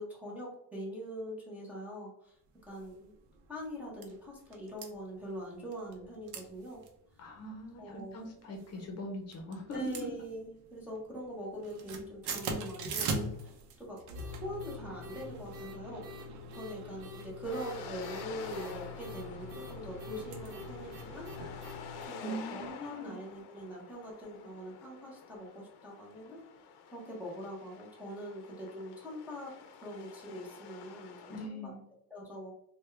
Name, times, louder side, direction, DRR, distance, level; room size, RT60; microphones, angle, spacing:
voice 1, 0.0-2.4 2.7-3.1 3.5-6.8 7.8-8.9 9.7-14.0 14.3-21.3 22.1-26.4 26.9-29.5 29.8-31.7 32.1-32.5, equal, 5° right, -6 dB, 0.6 m, -43 dB
sound 1, 2.7-2.9 3.4-3.5 3.6-4.1 4.5-4.9 5.7-6.0 6.3-6.4 6.8-6.9 7.4-7.7 8.4-9.0 9.3-10.7 11.0-11.3 11.5-22.1, right 2 dB, 75° right, 0.7 m, -41 dB
voice 2, 7.2-10.1 22.2-23.1 31.3-31.8, equal, 40° left, 1 dB, 0.7 m, -41 dB
sound 2, 17.4-31.5, left 6 dB, 75° left, 0.6 m, -49 dB
3.4 x 2.2 x 3.2 m, 0.73 s
cardioid pair, 175°, 39 cm